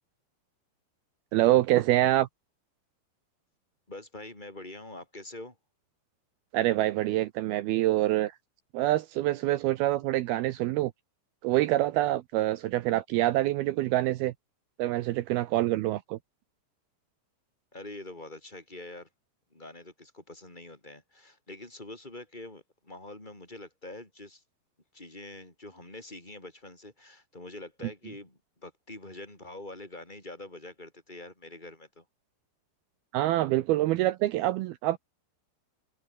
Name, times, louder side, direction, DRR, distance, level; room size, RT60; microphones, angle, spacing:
voice 1, 1.3-2.3 6.5-8.4 8.7-10.9 11.4-14.3 14.8-16.2 33.1-35.0, right 15 dB, 85° right, 2.1 m, -26 dB
voice 2, 3.9-5.6 17.7-19.1 19.5-24.4 24.9-32.0, left 2 dB, 10° left, 5.1 m, -45 dB
omnidirectional pair, 5.4 m